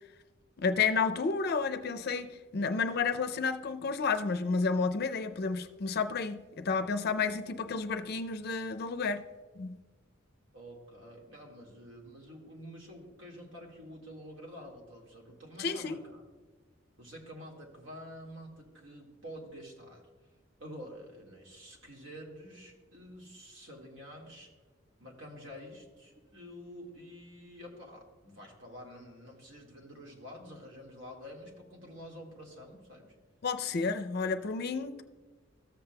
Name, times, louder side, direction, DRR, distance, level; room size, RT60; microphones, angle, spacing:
voice 1, 0.6-9.2 9.6-9.8 15.6-16.0 33.4-35.0, left 4 dB, 55° left, 0.4 m, -31 dB
voice 2, 10.5-16.2 17.0-20.1 20.6-24.5 25.0-33.2, equal, 75° right, 1.8 m, -48 dB
14.0 x 7.6 x 2.2 m
head